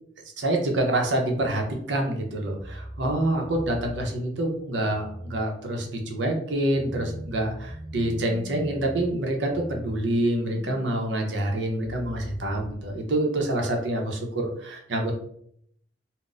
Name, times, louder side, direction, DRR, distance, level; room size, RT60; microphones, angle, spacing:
voice 1, 0.4-15.1, right 1 dB, 80° right, 2 dB, 0.7 m, -27 dB
sound 1, 0.9-12.7, equal, ahead, 0.3 m, -41 dB
2.5 x 2.1 x 3.9 m, 0.68 s
head